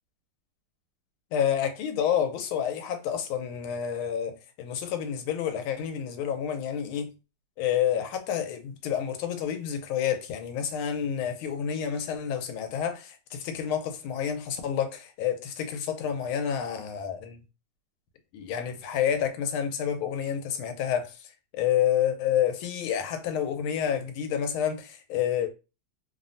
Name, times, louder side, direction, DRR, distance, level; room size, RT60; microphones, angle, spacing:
voice 1, 1.3-7.1 7.6-17.4 18.3-25.5, left 9 dB, 85° left, 1.5 m, -29 dB
3.4 x 2.1 x 2.5 m
omnidirectional pair, 2.3 m